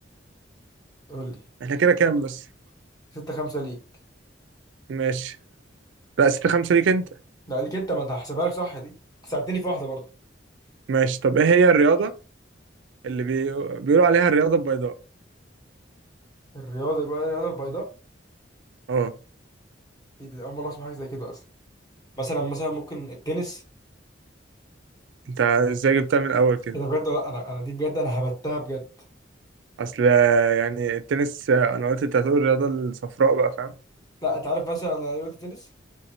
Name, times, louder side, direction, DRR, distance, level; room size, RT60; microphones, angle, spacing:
voice 1, 1.6-2.4 4.9-5.4 6.2-7.1 10.9-12.1 13.0-14.9 18.9-19.1 25.4-26.7 29.8-33.7, right 5 dB, 75° right, 0.4 m, -21 dB
voice 2, 3.1-3.8 7.5-8.9 9.2-10.0 16.5-17.9 20.2-21.4 22.2-23.6 26.7-28.8 34.2-35.7, right 1 dB, 20° left, 1.2 m, -29 dB
3.6 x 2.6 x 2.8 m
head